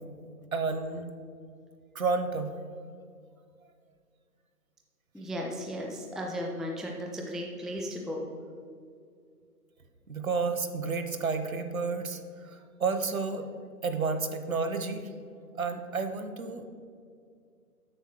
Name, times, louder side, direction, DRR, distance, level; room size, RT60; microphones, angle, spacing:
voice 1, 0.5-1.1 1.9-2.5 10.1-13.5 13.8-15.1 15.5-16.7, right 4 dB, 60° right, 8 dB, 0.9 m, -31 dB
voice 2, 5.1-8.2, equal, ahead, 0 dB, 0.4 m, -35 dB
8.0 x 5.8 x 6.1 m, 2.2 s
hypercardioid pair, 175°, 46 cm